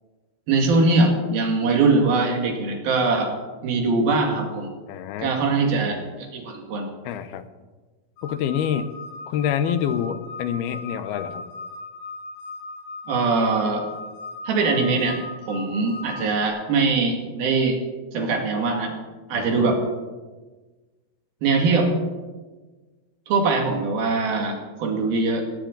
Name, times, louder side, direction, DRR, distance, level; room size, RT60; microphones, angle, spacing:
voice 1, 0.5-3.3 3.6-4.7 5.2-6.9 13.1-13.9 14.5-15.2 15.5-17.8 18.1-18.9 19.3-19.8 21.4-21.9 23.3-25.4, right 3 dB, 75° right, 2 dB, 4.0 m, -22 dB
voice 2, 4.9-5.3 7.0-7.4 8.2-8.9 9.3-11.4 19.3-19.7, left 9 dB, 85° left, 11 dB, 2.9 m, -27 dB
sound 1, 8.2-16.5, left 3 dB, 70° left, 6.7 m, -38 dB
18.0 x 17.5 x 3.9 m, 1.3 s
omnidirectional pair, 4.4 m